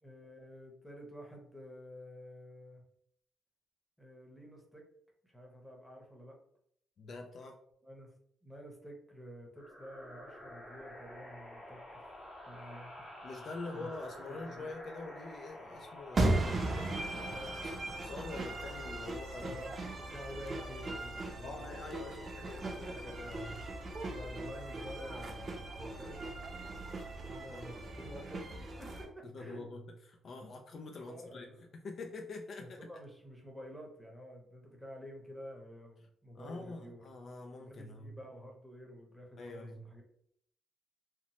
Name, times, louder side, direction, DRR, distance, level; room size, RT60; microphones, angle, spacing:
voice 1, 0.0-2.8 4.0-4.8 5.2-6.4 7.8-8.1 8.4-12.1 12.5-13.1 13.7-14.7 17.2-17.9 19.3-21.6 24.1-26.3 27.2-29.6 31.1-31.7 32.6-37.0 37.6-40.0, equal, ahead, 0 dB, 0.8 m, -50 dB
voice 2, 7.0-7.6 13.2-16.5 17.6-19.6 21.4-23.6 27.5-27.7 29.3-31.5 31.7-32.9 36.3-38.1 39.4-39.8, left 3 dB, 55° left, 3 dB, 0.3 m, -45 dB
sound 1, 9.5-20.9, left 1 dB, 35° left, 0.8 m, -50 dB
sound 2, 16.1-29.1, right 2 dB, 40° right, 0.5 m, -38 dB
2.8 x 2.0 x 2.9 m, 0.69 s
cardioid pair, 90°, 0 cm